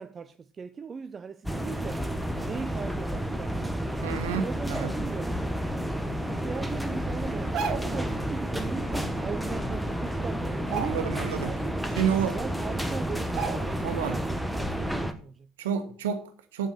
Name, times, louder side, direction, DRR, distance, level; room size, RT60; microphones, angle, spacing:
voice 1, 0.0-2.1 2.4-3.9 4.4-5.4 6.3-11.8 12.3-15.5, right 6 dB, 35° right, 0.6 m, -39 dB
sound 1, 1.4-15.1, equal, ahead, 1.2 m, -31 dB
voice 2, 4.0-4.9 10.7-11.5 11.9-12.4 13.8-14.2 15.6-16.7, right 8 dB, 75° right, 1.4 m, -30 dB
sound 2, 7.4-8.1 9.5-9.6 10.0-10.2 10.6-11.4 11.8-11.9 12.7-12.8 13.3-14.0 14.3-14.5, right 6 dB, 50° right, 1.5 m, -34 dB
7.4 x 7.4 x 6.7 m
hypercardioid pair, 65°, 0 cm